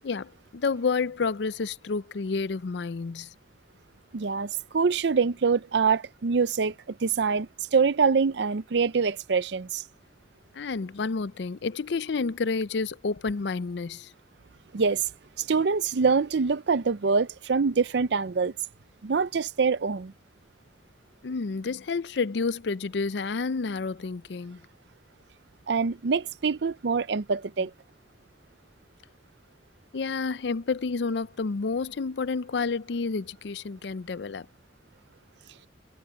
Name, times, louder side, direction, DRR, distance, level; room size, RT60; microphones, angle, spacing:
voice 1, 0.0-3.3 10.5-14.1 21.2-24.6 29.9-34.5, left 4 dB, 65° left, 0.5 m, -30 dB
voice 2, 4.1-9.8 14.7-15.1 15.4-18.5 19.0-20.1 25.7-27.7, right 5 dB, 60° right, 0.5 m, -25 dB
head